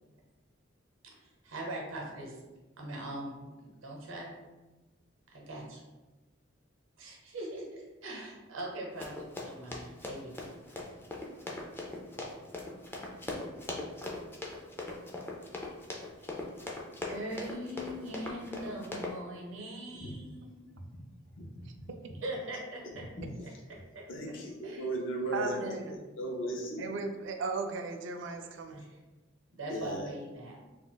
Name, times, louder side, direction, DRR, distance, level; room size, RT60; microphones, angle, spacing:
voice 1, 1.2-2.4 2.8-4.4 5.3-5.8 7.0-10.3 17.1-20.8 22.2-23.1 23.4-24.0 24.6-24.9 25.3-25.7 28.7-29.0 29.5-30.6, right 1 dB, 80° right, -2 dB, 0.7 m, -41 dB
Run, 9.0-19.1, left 2 dB, 10° left, 0.3 m, -40 dB
voice 2, 21.4-21.9 23.2-23.3 24.1-25.5 25.9-26.9 29.7-30.1, right 1 dB, 65° left, 0 dB, 0.6 m, -37 dB
voice 3, 25.3-26.0 26.8-28.8, right 4 dB, 65° right, 5 dB, 0.3 m, -36 dB
2.4 x 2.2 x 3.8 m, 1.2 s
head